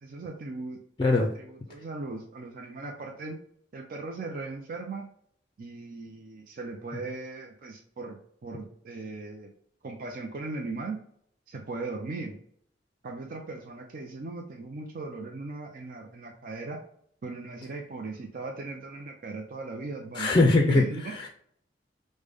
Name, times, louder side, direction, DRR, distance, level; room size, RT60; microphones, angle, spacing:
voice 1, 0.0-3.4 3.7-5.1 5.6-9.5 9.8-11.0 11.5-12.4 13.0-16.8 17.2-21.0, right 3 dB, 50° right, 1 dB, 0.5 m, -38 dB
voice 2, 20.1-21.3, left 2 dB, 25° left, 3 dB, 0.4 m, -22 dB
5.0 x 2.1 x 3.4 m, 0.66 s
head